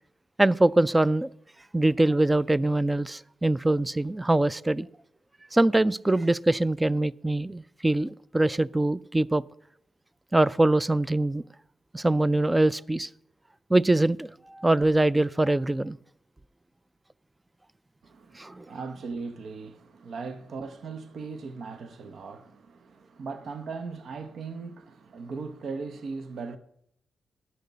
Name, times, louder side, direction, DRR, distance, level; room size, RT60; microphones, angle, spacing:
voice 1, 0.4-1.3 1.7-4.9 5.5-9.4 10.3-11.4 11.9-13.1 13.7-16.0 18.4-18.7, right 2 dB, 20° right, 0.4 m, -23 dB
voice 2, 18.0-26.6, right 4 dB, 65° right, 0.8 m, -38 dB
9.3 x 6.5 x 8.3 m
supercardioid pair, 50°, 0 cm